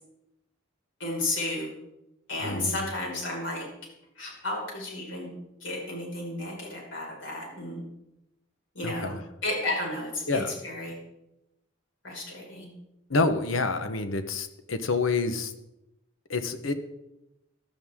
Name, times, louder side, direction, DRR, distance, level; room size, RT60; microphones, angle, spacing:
voice 1, 1.0-1.7 2.3-3.7 4.2-5.3 5.6-7.8 8.7-9.2 9.4-10.9 12.0-12.7, left 2 dB, 65° left, -1 dB, 5.5 m, -32 dB
voice 2, 2.4-2.9 8.8-9.2 10.3-10.5 13.1-15.5 16.3-16.7, left 3 dB, 85° left, 9 dB, 1.2 m, -28 dB
16.5 x 12.0 x 3.7 m, 0.90 s
head